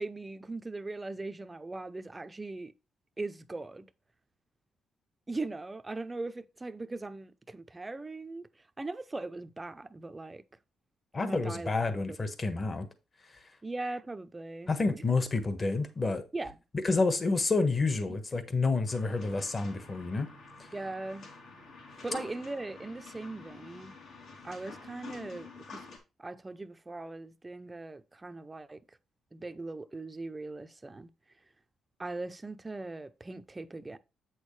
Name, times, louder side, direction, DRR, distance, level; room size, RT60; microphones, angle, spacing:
voice 1, 0.0-2.7 3.2-3.9 5.3-8.5 8.8-10.4 11.1-11.7 12.1-12.2 13.6-15.0 16.3-16.5 18.1-18.2 20.7-21.3 22.0-23.9 24.4-25.8 26.2-28.8 29.3-31.1 32.0-34.0, right 2 dB, 20° right, 0.7 m, -39 dB
voice 2, 11.1-12.9 14.7-16.2 16.8-20.3 20.6-20.7, left 3 dB, 30° left, 1.4 m, -29 dB
sound 1, 18.9-26.0, left 4 dB, 75° left, 3.3 m, -48 dB
8.1 x 6.3 x 3.3 m
cardioid pair, 90°, 0 cm